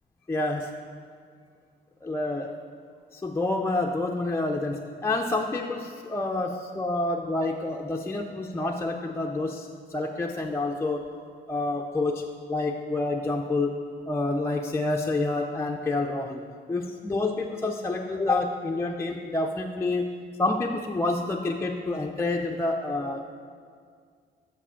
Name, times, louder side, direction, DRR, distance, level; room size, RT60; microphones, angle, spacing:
voice 1, 0.3-0.7 2.0-2.5 3.1-11.0 11.5-12.2 12.5-13.7 14.1-16.4 16.7-20.1 20.4-23.3, left 2 dB, 15° left, 1 dB, 0.4 m, -28 dB
6.4 x 4.9 x 5.6 m, 2.1 s
cardioid pair, 90°, 20 cm